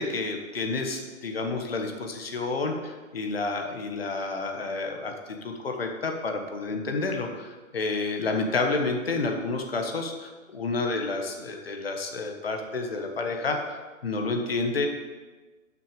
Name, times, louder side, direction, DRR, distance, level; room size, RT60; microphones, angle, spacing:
voice 1, 0.0-5.1 5.4-14.9, left 3 dB, 45° left, 3 dB, 1.3 m, -30 dB
11.0 x 6.2 x 5.2 m, 1.3 s
hypercardioid pair, 180°, 41 cm